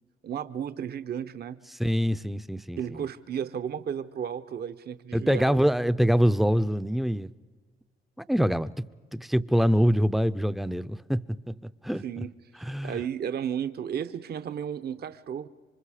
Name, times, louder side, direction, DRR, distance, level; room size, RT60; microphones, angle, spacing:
voice 1, 0.2-1.6 2.8-5.6 12.0-12.3 12.6-15.5, right 8 dB, 55° right, 0.8 m, -33 dB
voice 2, 1.8-3.1 5.1-7.3 8.3-8.7 9.1-11.5 11.8-12.2 12.6-13.0, equal, ahead, 0.6 m, -25 dB
27.0 x 24.5 x 4.9 m
cardioid pair, 90°, 20 cm